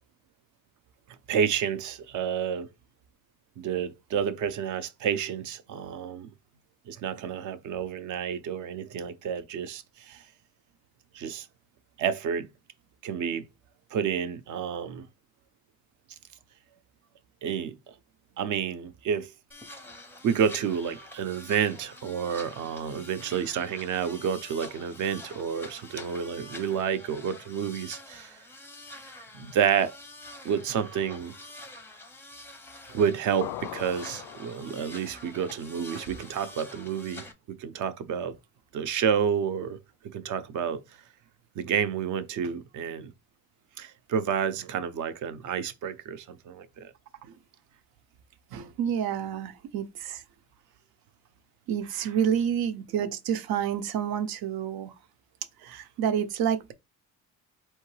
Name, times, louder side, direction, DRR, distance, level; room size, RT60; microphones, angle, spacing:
voice 1, 1.3-2.7 3.6-6.3 6.9-10.2 11.1-11.5 12.0-12.5 13.0-13.5 13.9-15.1 17.4-17.8 18.4-19.3 20.2-28.4 29.3-29.9 30.4-31.3 32.9-37.3 37.6-38.3 38.7-39.8 40.1-40.8 41.6-43.1 43.8-46.9, right 7 dB, 55° right, 0.7 m, -29 dB
sound 1, 19.5-37.3, left 1 dB, 5° left, 0.5 m, -46 dB
sound 2, 33.4-35.1, left 13 dB, 85° left, 0.5 m, -40 dB
voice 2, 48.5-50.2 51.7-54.9 55.6-56.7, right 8 dB, 90° right, 0.8 m, -29 dB
4.5 x 3.2 x 3.2 m
cardioid pair, 180°, 35 cm